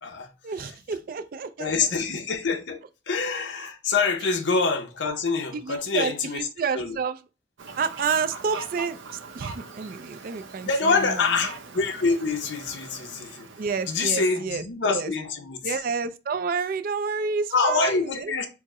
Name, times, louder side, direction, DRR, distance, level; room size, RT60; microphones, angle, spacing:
voice 1, 0.4-1.9 5.5-7.2 7.8-11.3 13.6-15.1 15.6-18.3, right 5 dB, 45° right, 0.3 m, -30 dB
voice 2, 1.6-2.8 3.1-6.5 6.7-7.0 10.6-13.5 13.9-15.8 17.5-18.5, left 4 dB, 70° left, 0.6 m, -25 dB
Fowl, 7.6-14.0, right 4 dB, 80° right, 0.6 m, -41 dB
4.6 x 2.0 x 3.6 m
head